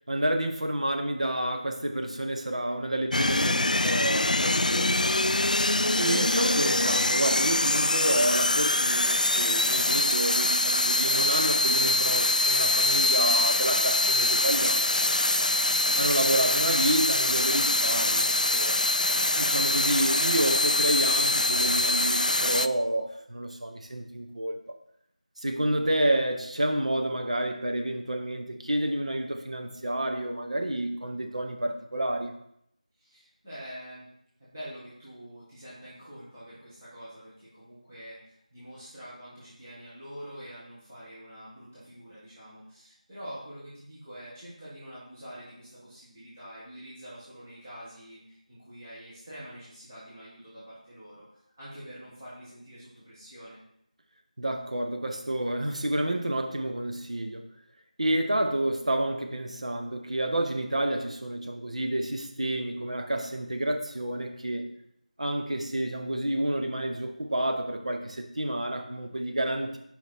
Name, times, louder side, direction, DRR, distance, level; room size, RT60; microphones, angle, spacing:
voice 1, 0.1-5.1 6.0-15.1 16.0-18.7 19.4-24.6 25.4-32.3 54.4-57.4 58.0-64.7 65.2-69.8, right 1 dB, 55° right, 4 dB, 0.9 m, -29 dB
sound 1, 3.1-22.7, left 2 dB, 80° left, 0.3 m, -24 dB
voice 2, 33.0-34.1 34.4-53.6, equal, 20° right, -11 dB, 1.4 m, -46 dB
6.4 x 5.1 x 4.4 m, 0.75 s
figure-of-eight pair, 170°, 4 cm